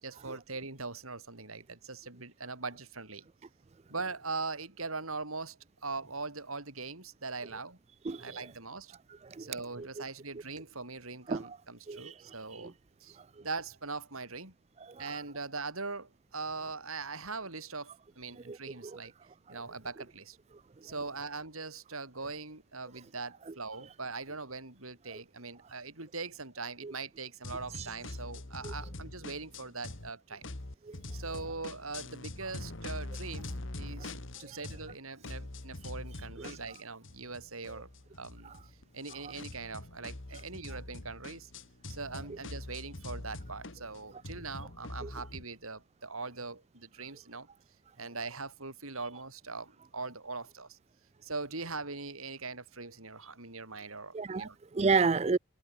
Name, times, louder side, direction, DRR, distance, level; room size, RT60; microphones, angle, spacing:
voice 1, 0.0-3.3 3.9-7.8 8.2-8.9 9.4-12.7 13.0-14.5 15.0-19.1 19.5-20.4 20.8-30.4 31.1-34.1 34.4-37.9 38.2-38.5 38.9-41.5 41.9-47.5 48.0-50.8 51.2-54.6, right 3 dB, 80° right, 5.7 m, -41 dB
voice 2, 8.0-8.5 9.2-9.5 9.8-9.9 11.3-11.6 11.9-12.2 12.5-12.7 13.1-13.2 14.8-15.2 18.5-18.6 18.8-19.0 19.5-19.6 23.5-23.6 25.1-25.2 26.8-26.9 27.8-27.9 28.6-28.7 30.8-31.0 34.4-34.6 36.4-36.6 38.4-38.6 39.2-39.3 45.0-45.1 54.1-55.4, right 4 dB, 30° right, 0.4 m, -32 dB
sound 1, 27.4-30.1 30.4-35.0 35.2-45.4, left 2 dB, 60° left, 1.9 m, -44 dB
head